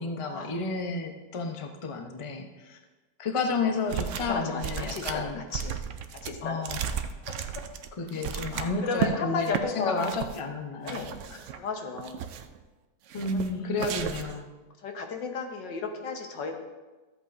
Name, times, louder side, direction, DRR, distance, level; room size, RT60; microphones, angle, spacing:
voice 1, 0.0-2.8 3.2-5.4 6.4-6.8 8.0-11.4 13.1-14.5, left 3 dB, 45° left, 4 dB, 0.4 m, -32 dB
sound 1, 3.9-4.3 4.6-9.1 9.5-9.6 10.0-10.4 10.9-11.6 12.0-12.6 13.1-13.5 13.8-14.4, right 9 dB, 90° right, 0.6 m, -34 dB
voice 2, 4.2-5.7 6.2-6.6 7.6-7.7 8.5-10.0 10.8-11.1 11.6-12.2 13.3-13.8 14.8-16.6, left 4 dB, 85° left, 3 dB, 1.8 m, -33 dB
14.0 x 8.1 x 2.6 m, 1.2 s
omnidirectional pair, 1.9 m